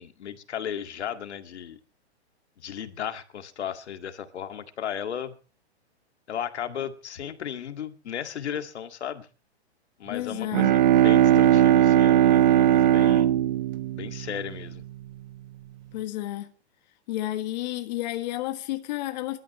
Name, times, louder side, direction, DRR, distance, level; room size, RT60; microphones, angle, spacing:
voice 1, 0.0-1.8 2.6-5.4 6.3-9.3 10.0-13.3 14.0-14.8, left 9 dB, 80° left, 2.1 m, -35 dB
voice 2, 10.1-10.7 15.9-16.5 17.1-19.4, left 15 dB, 40° left, 1.5 m, -31 dB
Bowed string instrument, 10.3-15.1, right 11 dB, 40° right, 1.0 m, -19 dB
25.5 x 13.0 x 3.1 m
hypercardioid pair, 160°, 33 cm